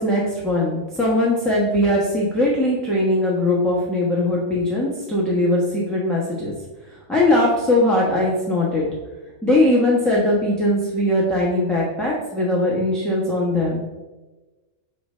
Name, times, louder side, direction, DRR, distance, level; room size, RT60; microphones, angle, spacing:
voice 1, 0.0-6.5 7.1-8.9 9.4-13.8, left 1 dB, ahead, -6 dB, 0.9 m, -20 dB
6.1 x 4.9 x 3.2 m, 1.2 s
omnidirectional pair, 1.5 m